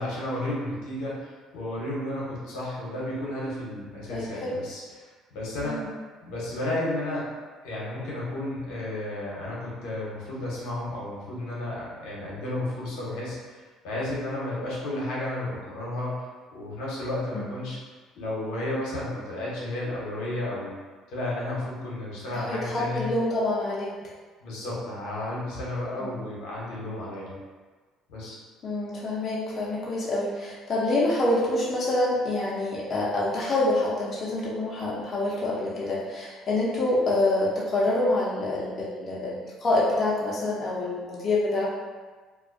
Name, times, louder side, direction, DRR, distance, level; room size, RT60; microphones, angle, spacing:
voice 1, 0.0-5.8 6.2-7.3 7.6-16.3 16.5-17.8 18.1-20.7 21.1-23.1 24.4-27.3 28.1-28.4, left 1 dB, 80° left, -5 dB, 0.7 m, -32 dB
voice 2, 4.1-4.5 5.6-5.8 17.3-17.5 22.3-23.9 26.0-26.2 28.6-41.7, left 2 dB, 40° left, -6 dB, 0.5 m, -26 dB
2.4 x 2.1 x 2.5 m, 1.4 s
supercardioid pair, 85°, 0 cm